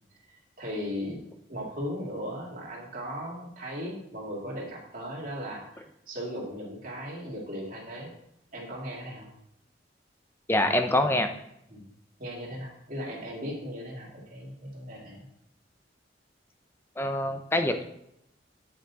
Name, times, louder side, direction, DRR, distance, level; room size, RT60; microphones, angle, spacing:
voice 1, 0.6-1.2 1.5-8.1 8.5-9.3 11.7-11.9 12.2-15.2, equal, 50° right, -3 dB, 2.5 m, -37 dB
voice 2, 10.5-11.3 17.0-17.8, left 1 dB, 15° left, 7 dB, 0.6 m, -25 dB
8.9 x 5.9 x 4.1 m, 0.78 s
head